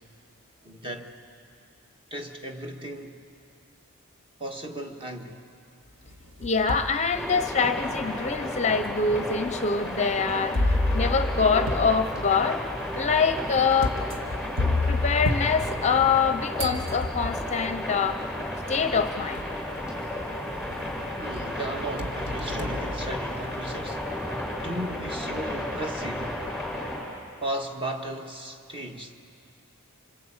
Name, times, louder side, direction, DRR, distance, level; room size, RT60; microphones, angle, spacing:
voice 1, 0.6-1.1 2.1-3.2 4.4-5.4 21.2-24.1 24.6-26.4 27.4-29.2, right 1 dB, 25° right, 1.7 m, -35 dB
sound 1, 6.1-7.0 7.6-7.7 8.6-8.7 10.5-16.3 16.6-17.6 18.7-18.8 19.4-19.8 20.2-21.0 21.3-23.7, left 2 dB, 60° right, 1.8 m, -30 dB
voice 2, 6.4-12.6 12.9-14.0 14.7-18.2 18.7-19.4, left 5 dB, 30° left, 0.7 m, -25 dB
sound 2, 7.1-27.0, left 1 dB, ahead, 6.6 m, -33 dB
26.5 x 25.5 x 8.8 m
head